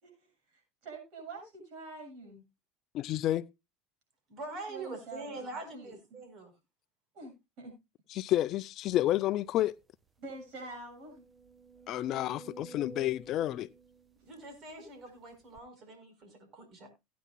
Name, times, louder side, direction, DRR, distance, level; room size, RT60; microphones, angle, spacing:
voice 1, 0.0-2.4 4.7-6.2 7.1-7.7 10.2-11.2 14.2-14.3, right 3 dB, 60° right, 7.1 m, -47 dB
voice 2, 2.9-3.4 8.2-9.8 11.9-13.7, left 14 dB, 50° left, 0.5 m, -30 dB
voice 3, 4.3-6.5 14.2-16.9, right 3 dB, 45° right, 4.7 m, -44 dB
sound 1, 9.5-9.6 10.0-10.1 10.7-14.9 15.6-15.7, right 3 dB, 20° right, 1.2 m, -52 dB
17.5 x 9.3 x 2.3 m
hypercardioid pair, 85°, 0 cm